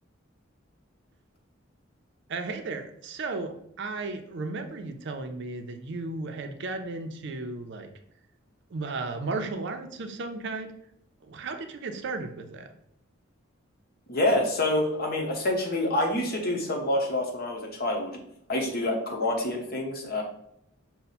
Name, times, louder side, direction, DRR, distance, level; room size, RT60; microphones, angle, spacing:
voice 1, 2.3-7.9 8.7-10.7 11.2-12.7, right 3 dB, 65° right, 7 dB, 0.5 m, -34 dB
voice 2, 14.1-18.2 18.5-20.2, left 1 dB, 50° left, 1 dB, 1.0 m, -27 dB
5.4 x 2.1 x 4.1 m, 0.76 s
head